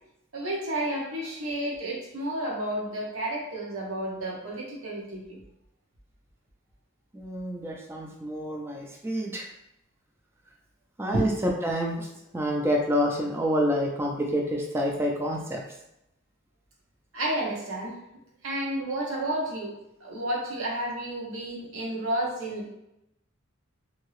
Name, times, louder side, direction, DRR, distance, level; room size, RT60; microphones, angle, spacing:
voice 1, 0.3-5.4 11.1-11.3 17.1-18.0 18.4-22.7, right 1 dB, 90° right, -3 dB, 0.9 m, -31 dB
voice 2, 7.1-9.5 11.0-12.1 12.3-15.6, equal, 10° right, 0 dB, 0.3 m, -28 dB
2.7 x 2.7 x 3.0 m, 0.85 s
head